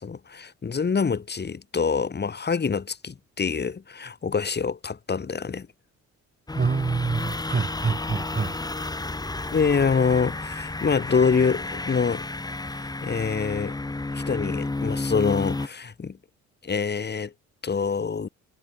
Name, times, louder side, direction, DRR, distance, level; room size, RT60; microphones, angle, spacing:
voice 1, 0.0-5.7 9.5-12.2 12.7-13.7 14.1-16.2 16.6-17.3 17.6-18.3, left 5 dB, 35° left, 2.7 m, -25 dB
sound 1, 6.5-15.7, left 2 dB, 15° left, 1.4 m, -31 dB
voice 2, 6.5-8.6 9.4-9.5, right 4 dB, 30° right, 4.8 m, -26 dB
cardioid pair, 90°, 30 cm